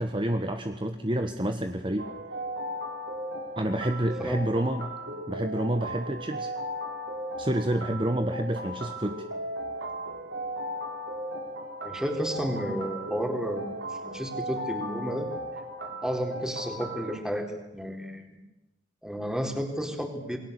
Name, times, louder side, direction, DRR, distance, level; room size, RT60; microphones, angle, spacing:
voice 1, 0.0-2.1 3.6-4.9 5.3-6.5 7.4-9.2, right 1 dB, 25° right, 7 dB, 1.4 m, -28 dB
sound 1, 2.0-17.2, equal, 65° right, 4.5 m, -36 dB
voice 2, 11.8-15.3 16.0-18.4 19.0-20.4, equal, 5° right, 4 dB, 4.2 m, -32 dB
28.5 x 22.0 x 8.3 m, 0.99 s
head